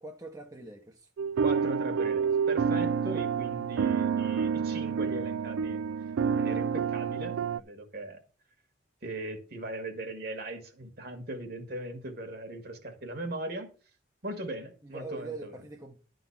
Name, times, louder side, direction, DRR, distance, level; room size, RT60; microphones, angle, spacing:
voice 1, 0.0-1.1 14.8-16.0, right 2 dB, 20° right, 0.8 m, -43 dB
sound 1, 1.2-7.6, right 6 dB, 80° right, 0.3 m, -28 dB
voice 2, 1.4-5.8 6.3-8.2 9.0-13.7 14.2-15.5, right 1 dB, 50° right, 1.6 m, -39 dB
11.0 x 3.9 x 7.0 m
head